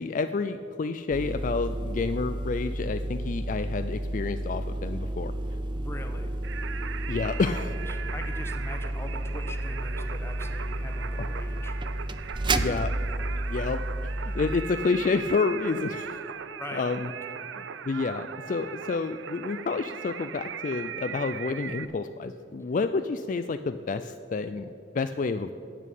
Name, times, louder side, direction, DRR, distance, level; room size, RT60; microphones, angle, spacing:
voice 1, 0.0-5.3 7.1-7.7 11.2-11.3 12.6-12.9 13.3-16.2 16.7-17.1 17.6-25.5, left 4 dB, 45° left, 10 dB, 0.4 m, -29 dB
sound 1, 1.1-14.7, right 1 dB, 25° right, 0.5 m, -31 dB
voice 2, 5.8-6.3 7.7-11.8 12.5-12.6 16.6-17.4, left 1 dB, 15° left, 6 dB, 1.0 m, -42 dB
Singing, 6.4-21.8, right 7 dB, 90° right, 0.5 m, -39 dB
11.0 x 8.5 x 8.3 m, 2.6 s
head